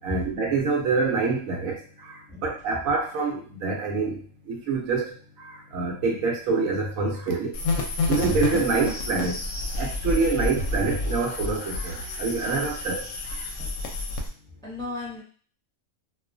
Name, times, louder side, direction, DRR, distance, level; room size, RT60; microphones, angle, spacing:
voice 1, 0.0-7.6 8.1-9.5 9.8-13.5, right 4 dB, 75° right, 1 dB, 1.0 m, -26 dB
voice 2, 2.3-2.9 13.6-13.7 14.6-15.2, left 3 dB, 5° left, -7 dB, 0.7 m, -37 dB
sound 1, 7.5-14.3, left 2 dB, 70° left, 0.8 m, -29 dB
2.3 x 2.2 x 2.5 m, 0.43 s
omnidirectional pair, 1.4 m